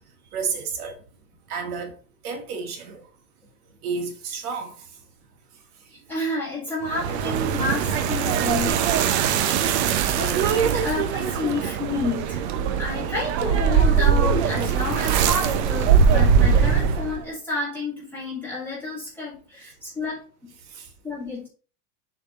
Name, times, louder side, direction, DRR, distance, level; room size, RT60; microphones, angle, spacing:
voice 1, 0.3-1.0 1.5-2.0 2.2-3.1 3.8-4.9 9.5-9.7 20.7-20.9, right 5 dB, 65° right, 2.1 m, -31 dB
voice 2, 6.1-9.4 10.2-12.4 12.8-20.5 21.0-21.5, left 2 dB, 5° left, 2.6 m, -30 dB
sound 1, 6.8-17.2, right 7 dB, 45° right, 0.7 m, -21 dB
6.8 x 4.2 x 5.1 m
supercardioid pair, 175°, 48 cm